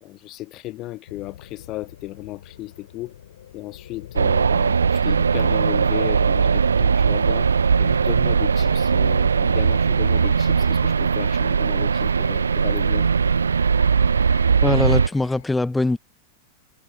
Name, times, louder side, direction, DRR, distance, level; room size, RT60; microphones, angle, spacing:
voice 1, 0.0-3.1 3.5-7.5 7.8-13.1, left 17 dB, 35° left, 0.5 m, -35 dB
sound 1, 1.1-15.4, left 11 dB, 60° left, 7.6 m, -45 dB
sound 2, 4.2-15.1, right 6 dB, 75° right, 0.6 m, -19 dB
voice 2, 14.6-16.0, left 2 dB, 5° left, 0.8 m, -22 dB
figure-of-eight pair, 90°, 0 cm